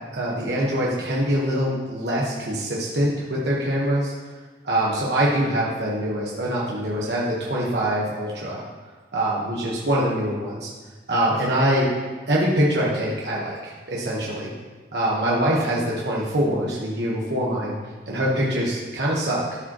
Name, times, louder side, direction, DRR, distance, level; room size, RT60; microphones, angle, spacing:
voice 1, 0.1-4.1 4.6-8.6 9.1-10.7 11.1-11.9 12.3-14.5 14.9-17.7 18.1-19.6, right 1 dB, 70° right, -5 dB, 1.3 m, -24 dB
13.5 x 5.1 x 3.0 m, 1.3 s
head